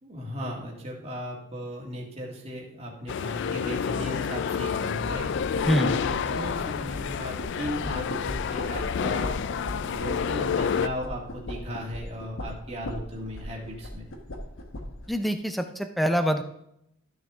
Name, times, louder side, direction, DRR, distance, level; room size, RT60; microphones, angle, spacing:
voice 1, 0.0-9.4 9.8-14.0, equal, 30° right, -3 dB, 1.8 m, -36 dB
sound 1, 3.1-10.9, left 7 dB, 55° left, 0.3 m, -29 dB
sound 2, 5.0-15.1, left 1 dB, 70° left, 1.2 m, -38 dB
voice 2, 15.1-16.4, equal, ahead, 7 dB, 0.5 m, -25 dB
13.0 x 6.3 x 3.6 m, 0.78 s
head